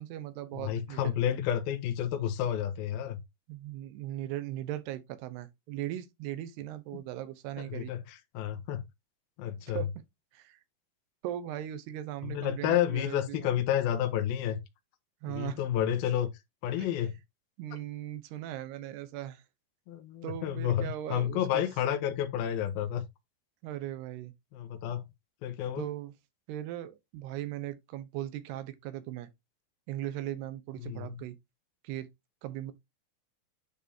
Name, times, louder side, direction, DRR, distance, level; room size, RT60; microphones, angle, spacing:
voice 1, 0.0-1.1 3.5-7.9 9.7-10.1 10.3-10.6 11.2-13.5 15.2-15.6 16.8-16.9 17.6-19.4 20.2-21.7 23.6-24.3 25.8-26.1 26.5-29.3 29.9-31.4 31.8-32.1 32.4-32.7, right 13 dB, 85° right, 3.0 m, -38 dB
voice 2, 0.5-3.2 7.6-8.8 9.4-9.9 12.2-14.6 15.3-16.3 16.6-17.1 19.9-23.0 24.5-25.1 25.4-25.9 30.8-31.2, left 10 dB, 75° left, 2.7 m, -30 dB
10.0 x 5.3 x 2.7 m
omnidirectional pair, 4.6 m